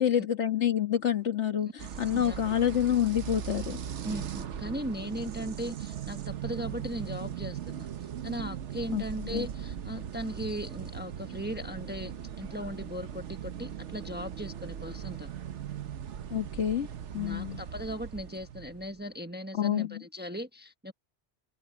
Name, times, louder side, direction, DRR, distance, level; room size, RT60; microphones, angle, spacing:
voice 1, 0.0-3.8 8.9-9.0 9.3-9.5 16.3-16.9 17.1-17.6 19.5-20.0, left 10 dB, 85° left, 1.9 m, -27 dB
sound 1, 1.8-19.0, right 9 dB, 85° right, 1.2 m, -39 dB
voice 2, 2.1-2.5 4.0-7.9 8.2-15.3 17.2-20.9, equal, 10° right, 1.3 m, -38 dB
open air
omnidirectional pair, 1.2 m